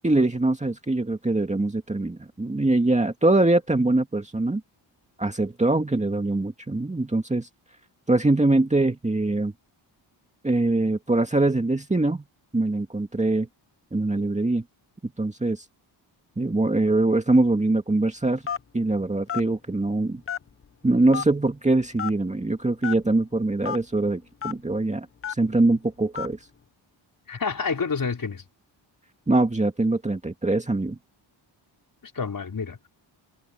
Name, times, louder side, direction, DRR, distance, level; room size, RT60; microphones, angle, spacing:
voice 1, 0.0-4.6 5.2-7.5 8.1-9.5 10.4-12.2 12.5-13.5 13.9-14.6 15.2-15.6 16.4-18.4 18.7-20.2 20.8-26.4 29.3-31.0, right 2 dB, 15° right, 2.1 m, -23 dB
Telephone, 18.5-18.8 19.3-19.5 20.3-20.7 21.1-21.3 22.0-22.2 22.8-23.0 23.6-23.8 24.4-24.5 25.2-25.5 26.2-26.3, left 7 dB, 30° left, 0.9 m, -30 dB
voice 2, 27.3-28.5 32.0-32.9, left 5 dB, 45° left, 5.7 m, -29 dB
wide cardioid pair, 110°, 46 cm